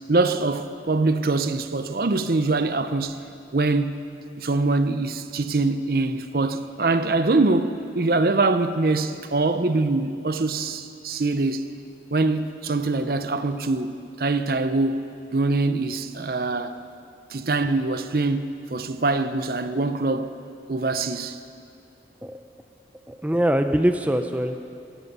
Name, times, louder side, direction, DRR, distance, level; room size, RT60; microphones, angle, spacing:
voice 1, 0.1-3.2 3.5-4.0 4.4-11.6 12.1-16.8 17.3-20.3 20.7-21.4, right 3 dB, 55° right, 0.7 m, -23 dB
voice 2, 23.1-24.7, equal, 10° right, 0.5 m, -23 dB
17.0 x 14.0 x 5.4 m
head